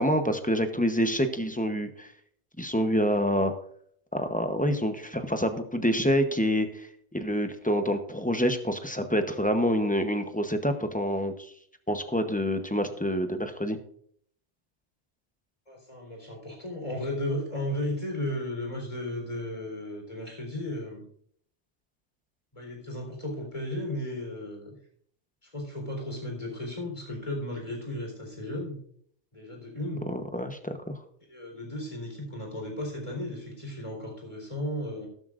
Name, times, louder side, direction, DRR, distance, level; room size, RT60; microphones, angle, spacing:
voice 1, 0.0-2.1 2.6-3.5 4.1-11.5 11.9-13.8 30.1-30.9, equal, 10° left, 7 dB, 0.8 m, -27 dB
voice 2, 15.7-21.0 22.5-24.8 25.4-28.8 29.3-30.0 31.3-35.1, left 1 dB, 30° left, 0 dB, 4.1 m, -35 dB
13.0 x 12.5 x 2.5 m, 0.64 s
omnidirectional pair, 1.2 m